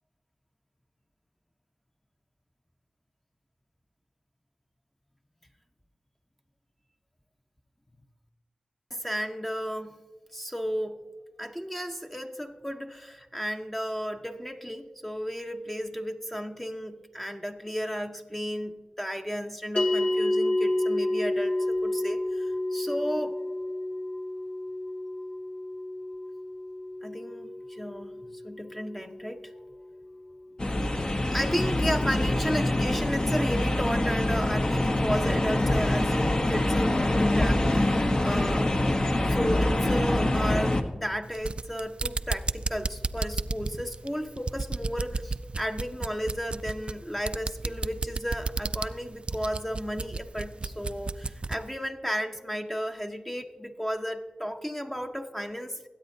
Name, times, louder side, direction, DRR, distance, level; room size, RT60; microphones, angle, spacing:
voice 1, 8.9-10.0 10.3-11.0 11.4-23.4 27.0-29.6 31.3-38.7 39.3-55.9, equal, 10° left, 4 dB, 0.7 m, -33 dB
sound 1, 19.8-30.3, left 1 dB, 55° left, 2.0 m, -30 dB
sound 2, 30.6-40.8, left 1 dB, 35° left, 0.9 m, -25 dB
sound 3, 41.2-51.7, right 3 dB, 45° right, 0.3 m, -33 dB
21.5 x 8.9 x 2.7 m, 1.3 s
cardioid pair, 50°, 3 cm